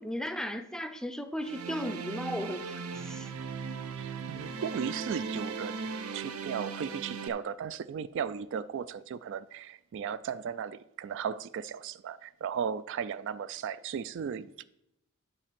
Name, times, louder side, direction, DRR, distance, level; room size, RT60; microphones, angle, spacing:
voice 1, 0.0-3.3, equal, 5° left, 0.5 m, -36 dB
sound 1, 1.4-7.3, right 5 dB, 75° right, 0.8 m, -38 dB
voice 2, 4.0-14.6, right 7 dB, 55° right, 0.3 m, -36 dB
10.0 x 4.3 x 7.5 m
head